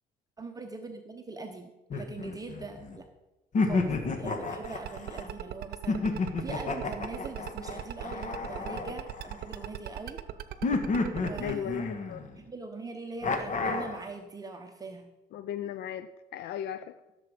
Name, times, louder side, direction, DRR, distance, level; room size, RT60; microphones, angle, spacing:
voice 1, 0.4-3.1 3.6-10.2 11.2-11.9 12.4-15.1, right 3 dB, 20° right, 3 dB, 1.0 m, -42 dB
sound 1, 1.9-3.0 3.5-5.3 5.9-9.6 10.6-12.4 13.2-14.0, left 3 dB, 45° left, 1.7 m, -31 dB
sound 2, 4.6-11.5, right 12 dB, 65° right, 0.8 m, -38 dB
voice 2, 11.4-12.2 15.3-17.0, left 10 dB, 75° left, 12 dB, 0.5 m, -36 dB
15.5 x 7.2 x 5.1 m, 1.1 s
cardioid pair, 110°, 17 cm